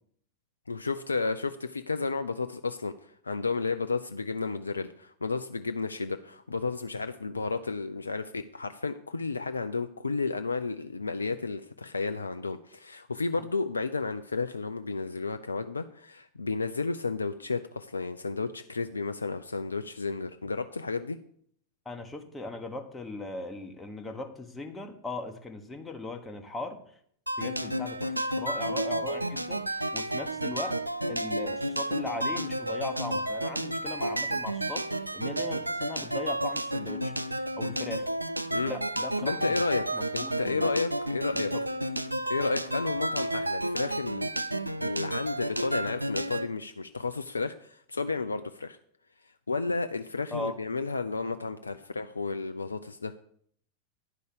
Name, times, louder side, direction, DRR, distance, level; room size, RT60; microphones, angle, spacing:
voice 1, 0.7-21.2 28.7-28.8 38.5-38.7 39.2-39.9 40.1-41.5 42.3-44.3 44.8-48.8 49.5-53.1, left 4 dB, 75° left, 9 dB, 0.4 m, -32 dB
voice 2, 21.8-27.0 27.4-30.8 31.1-37.1 37.5-38.0 38.6-39.6 39.9-40.7 41.3-41.6 50.3-50.6, left 2 dB, 10° left, 4 dB, 1.2 m, -39 dB
sound 1, 27.3-46.5, right 1 dB, 85° right, 0.4 m, -31 dB
10.0 x 5.3 x 6.7 m, 0.62 s
figure-of-eight pair, 90°, 0 cm